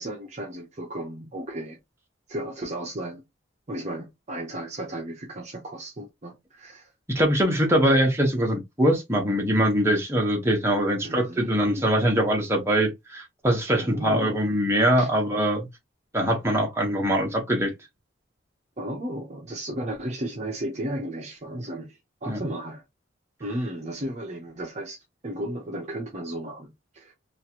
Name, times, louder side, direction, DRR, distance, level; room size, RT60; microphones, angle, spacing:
voice 1, 0.0-1.8 2.3-3.2 3.7-6.9 11.0-12.0 13.7-14.4 15.0-15.1 18.8-22.8 23.4-27.1, right 1 dB, 35° right, 0.7 m, -34 dB
voice 2, 7.1-15.7 16.1-17.7 22.3-22.4, equal, 15° right, 0.9 m, -23 dB
3.0 x 2.5 x 2.8 m
head